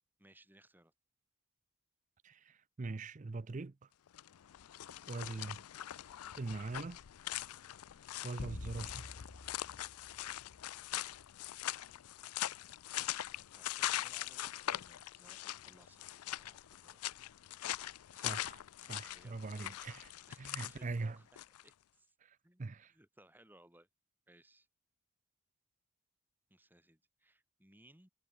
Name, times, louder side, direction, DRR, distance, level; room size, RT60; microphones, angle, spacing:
voice 1, 0.2-0.9 5.3-5.6 7.9-8.2 11.8-11.9 13.5-17.0 19.1-19.6 20.3-22.1 22.4-23.9 24.3-24.7 26.5-28.1, right 1 dB, 10° right, 2.7 m, -64 dB
voice 2, 2.2-3.8 5.1-5.6 6.4-7.0 8.2-9.1 18.2-18.6 18.9-20.1 20.4-21.2 22.2-22.9, right 3 dB, 35° right, 0.5 m, -42 dB
sound 1, 4.1-21.7, left 13 dB, 90° left, 0.4 m, -42 dB
sound 2, 8.4-11.0, left 2 dB, 65° left, 1.3 m, -48 dB
head